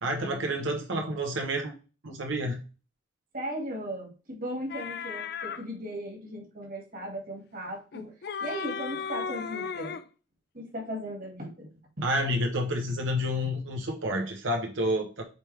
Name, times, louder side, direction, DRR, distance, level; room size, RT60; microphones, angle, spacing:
voice 1, 0.0-1.7 2.0-2.6 12.0-15.2, equal, 85° right, 2 dB, 1.0 m, -29 dB
voice 2, 3.3-8.1 8.4-10.0 10.5-11.7 12.0-12.1, equal, 50° right, 2 dB, 1.8 m, -37 dB
sound 1, 4.7-5.6 7.9-10.1, left 6 dB, 55° left, 0.5 m, -35 dB
8.1 x 3.5 x 3.3 m, 0.34 s
head